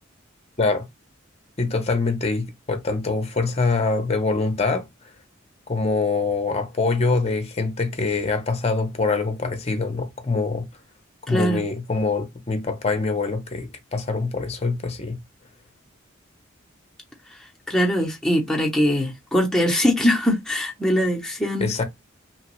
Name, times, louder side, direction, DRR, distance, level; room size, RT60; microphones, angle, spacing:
voice 1, 1.6-4.9 5.7-10.7 11.3-15.2 21.6-21.8, left 3 dB, 35° left, 0.7 m, -24 dB
voice 2, 11.3-11.6 17.7-21.8, equal, 5° left, 0.8 m, -22 dB
3.0 x 2.3 x 3.0 m
head